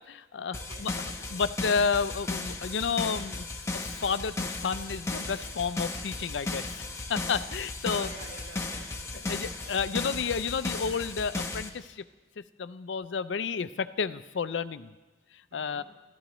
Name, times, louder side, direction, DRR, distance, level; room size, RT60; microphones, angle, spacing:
voice 1, 0.0-3.5 3.7-6.8 7.1-8.1 9.3-12.0 12.6-14.9 15.5-15.8, left 5 dB, 90° left, 13 dB, 0.5 m, -31 dB
sound 1, 0.5-11.7, left 2 dB, 15° left, 0.9 m, -35 dB
voice 2, 0.5-0.9 7.9-9.4 9.9-10.1 15.5-15.8, right 2 dB, 85° right, 0 dB, 3.1 m, -48 dB
25.5 x 14.0 x 3.1 m, 1.2 s
head